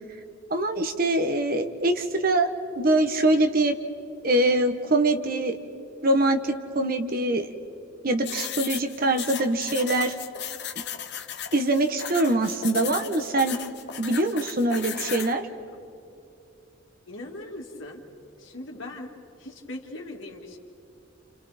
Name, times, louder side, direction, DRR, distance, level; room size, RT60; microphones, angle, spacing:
voice 1, 0.5-2.5 2.7-3.7 4.2-5.6 6.0-7.5 8.0-10.1 11.5-13.6 14.0-15.5, right 2 dB, 45° right, 7 dB, 1.3 m, -23 dB
sound 1, 8.2-15.3, left 9 dB, 55° left, 1.2 m, -36 dB
voice 2, 17.1-18.0 18.4-19.1 19.4-20.6, left 1 dB, 75° left, 0 dB, 2.7 m, -39 dB
30.0 x 29.5 x 4.4 m, 2.7 s
head